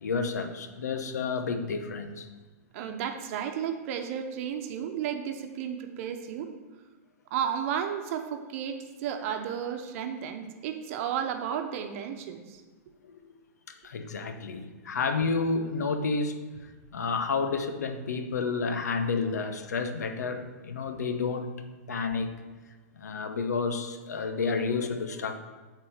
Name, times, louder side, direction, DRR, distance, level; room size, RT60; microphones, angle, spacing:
voice 1, 0.0-2.3 13.0-13.1 13.7-16.4 16.9-21.6 21.9-22.3 22.9-25.4, left 4 dB, 85° left, 7 dB, 0.8 m, -30 dB
voice 2, 2.7-6.5 7.3-12.6, right 8 dB, 55° right, 6 dB, 1.0 m, -33 dB
8.4 x 4.2 x 6.6 m, 1.3 s
hypercardioid pair, 125°, 9 cm